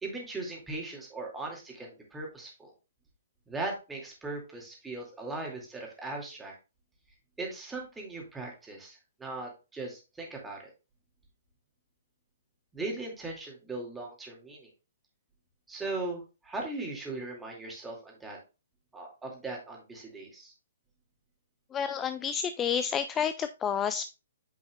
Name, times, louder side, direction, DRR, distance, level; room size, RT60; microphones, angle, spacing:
voice 1, 0.0-2.7 3.5-6.6 7.4-10.7 12.7-14.7 15.7-18.4 18.9-20.5, right 2 dB, 10° right, -1 dB, 2.3 m, -39 dB
voice 2, 21.7-24.1, left 7 dB, 20° left, 11 dB, 0.3 m, -30 dB
8.8 x 5.3 x 2.3 m, 0.29 s
figure-of-eight pair, 125°, 0 cm